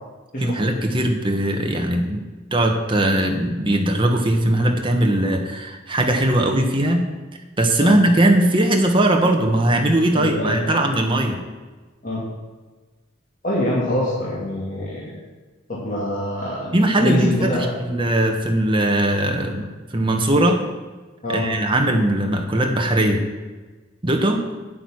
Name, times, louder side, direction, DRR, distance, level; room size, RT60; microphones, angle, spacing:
voice 1, 0.4-2.2 2.5-7.1 7.6-11.4 16.7-20.6 21.3-23.2 24.0-24.4, right 1 dB, 25° right, 3 dB, 1.4 m, -19 dB
voice 2, 10.1-10.8 12.0-12.2 13.4-15.1 15.7-17.7 21.2-21.5, left 1 dB, 40° left, -7 dB, 2.5 m, -24 dB
9.2 x 8.8 x 6.4 m, 1.3 s
head